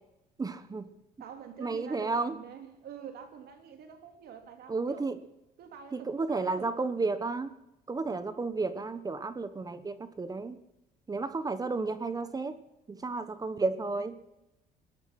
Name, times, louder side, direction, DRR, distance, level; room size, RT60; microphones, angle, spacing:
voice 1, 0.4-0.9 1.6-2.4 4.7-5.2 5.9-7.5 7.9-10.6 11.1-12.6 12.9-14.2, right 3 dB, 20° right, 12 dB, 1.1 m, -32 dB
voice 2, 1.2-5.1 5.6-6.7, right 8 dB, 70° right, 6 dB, 2.8 m, -47 dB
20.0 x 11.0 x 5.9 m, 0.89 s
cardioid pair, 110°, 17 cm